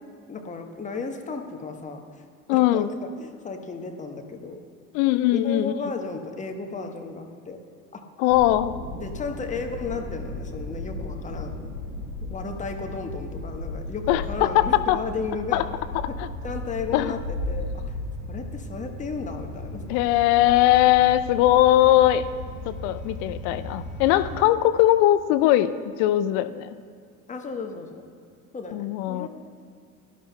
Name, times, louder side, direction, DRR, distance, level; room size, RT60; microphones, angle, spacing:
voice 1, 0.3-2.0 2.5-4.6 5.3-7.6 7.9-8.0 9.0-11.6 12.2-15.7 16.1-16.2 16.4-17.2 17.5-17.9 18.3-19.8 27.3-28.0 28.5-29.3, left 4 dB, 15° left, 4 dB, 1.1 m, -34 dB
voice 2, 2.5-2.9 4.9-5.7 8.2-8.8 14.1-15.0 15.5-15.6 16.2-16.3 16.9-17.2 19.9-22.3 22.7-25.7 26.0-26.7 28.7-29.3, left 14 dB, 40° left, 13 dB, 0.6 m, -20 dB
sound 1, 8.3-24.4, left 2 dB, 80° left, 2.1 m, -35 dB
18.0 x 12.5 x 2.3 m, 2.3 s
figure-of-eight pair, 70°, 44 cm